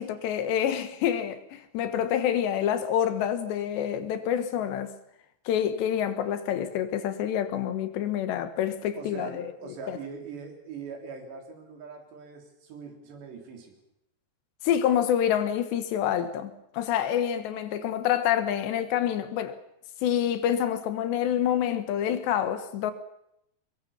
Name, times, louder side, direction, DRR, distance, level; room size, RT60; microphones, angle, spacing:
voice 1, 0.0-4.9 5.5-9.5 9.9-10.0 14.6-19.6 20.0-22.9, left 10 dB, 90° left, 3.7 m, -27 dB
voice 2, 9.0-13.8, right 5 dB, 85° right, 5.7 m, -41 dB
23.0 x 21.5 x 7.1 m
omnidirectional pair, 4.8 m